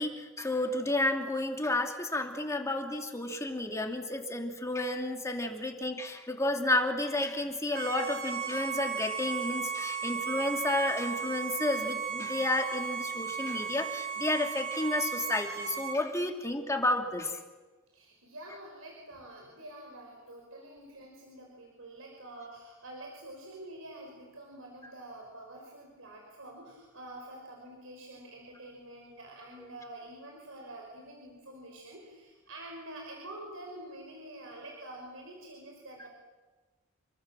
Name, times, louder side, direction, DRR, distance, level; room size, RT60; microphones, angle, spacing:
voice 1, 0.0-17.4 29.6-29.7 36.0-36.1, left 2 dB, 15° left, 3 dB, 2.8 m, -31 dB
Bowed string instrument, 7.7-16.0, right 7 dB, 50° right, 3.2 m, -35 dB
voice 2, 17.9-36.1, right 1 dB, 75° right, 0 dB, 5.6 m, -47 dB
29.0 x 22.5 x 7.6 m, 1.3 s
head